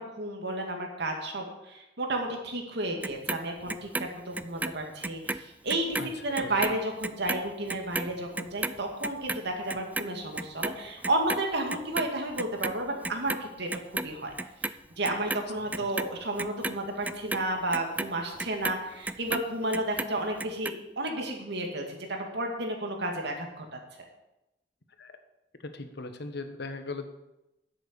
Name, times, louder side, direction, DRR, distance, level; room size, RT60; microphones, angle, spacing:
voice 1, 0.0-14.3 15.0-23.8, right 1 dB, 65° right, 3 dB, 2.3 m, -32 dB
Clock, 3.0-5.4 5.7-12.1 12.4-13.4 13.7-14.7 15.0-19.5 19.7-20.7 21.1-21.2, right 2 dB, 10° right, 0.4 m, -34 dB
voice 2, 25.6-27.1, left 3 dB, 65° left, 8 dB, 1.3 m, -38 dB
10.5 x 8.0 x 7.0 m, 0.92 s
head